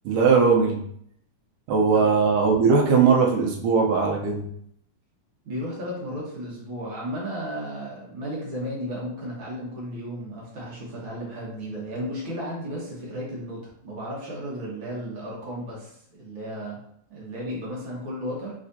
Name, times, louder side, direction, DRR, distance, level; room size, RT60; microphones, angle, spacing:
voice 1, 0.1-0.8 1.7-4.5, right 5 dB, 80° right, 0 dB, 2.2 m, -19 dB
voice 2, 5.4-16.8 17.1-18.5, equal, 60° right, -5 dB, 1.4 m, -34 dB
5.0 x 3.5 x 2.7 m, 0.70 s
omnidirectional pair, 3.8 m